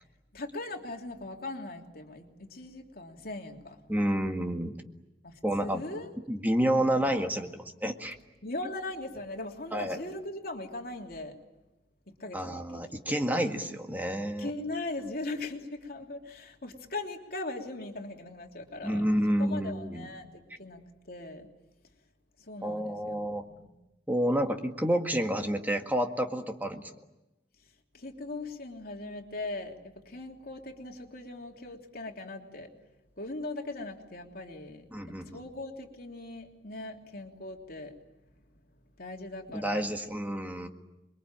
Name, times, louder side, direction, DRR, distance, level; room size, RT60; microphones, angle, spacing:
voice 1, 0.3-3.8 5.2-6.1 6.8-7.0 8.4-11.3 12.1-13.2 14.4-19.0 19.4-21.5 22.4-23.7 27.9-32.7 33.2-37.9 39.0-39.9, left 2 dB, 55° left, 2 dB, 3.1 m, -40 dB
voice 2, 3.9-4.8 5.4-5.8 6.3-7.5 7.8-8.2 9.7-10.0 12.3-14.5 18.8-20.1 22.6-23.4 24.1-26.9 34.9-35.4 39.5-40.7, equal, 10° right, 4 dB, 1.8 m, -29 dB
27.5 x 22.5 x 8.9 m, 0.97 s
head